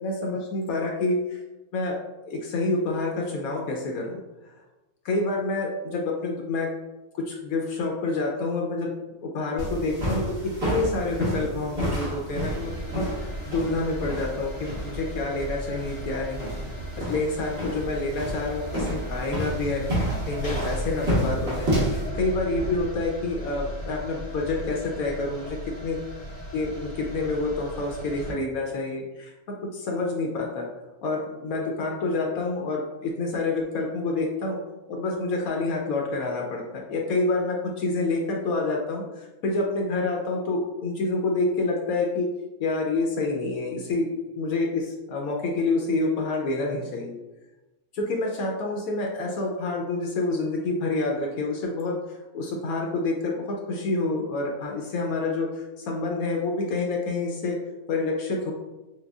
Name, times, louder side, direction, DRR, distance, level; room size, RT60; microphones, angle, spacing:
voice 1, 0.0-1.4 1.7-2.0 2.3-4.2 5.0-6.7 7.1-8.9 9.2-16.5 16.9-25.6 25.8-26.0 26.5-29.3 29.7-30.7 31.0-34.6 34.9-42.3 42.6-47.2 47.9-57.6 57.9-58.5, left 3 dB, 75° left, 0 dB, 1.0 m, -28 dB
sound 1, 9.6-22.1, right 1 dB, 45° right, 1.4 m, -30 dB
sound 2, 12.3-28.3, equal, 25° right, 1.5 m, -37 dB
6.4 x 2.2 x 2.3 m, 1.1 s
omnidirectional pair, 1.6 m